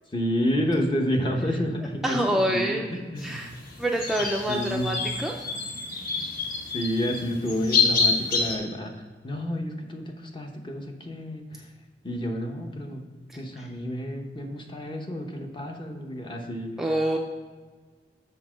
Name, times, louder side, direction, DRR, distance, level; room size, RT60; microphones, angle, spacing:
voice 1, 0.1-2.8 3.1-3.4 4.5-5.0 6.7-8.9 9.2-11.7 12.0-13.0 13.3-16.7, equal, 30° left, 3 dB, 0.8 m, -30 dB
voice 2, 2.0-2.9 3.2-3.5 3.8-5.3 13.3-13.7 16.8-17.2, right 1 dB, ahead, 0 dB, 0.4 m, -26 dB
sound 1, 3.2-8.6, left 4 dB, 55° left, 1.2 m, -27 dB
7.2 x 3.7 x 6.1 m, 1.4 s
head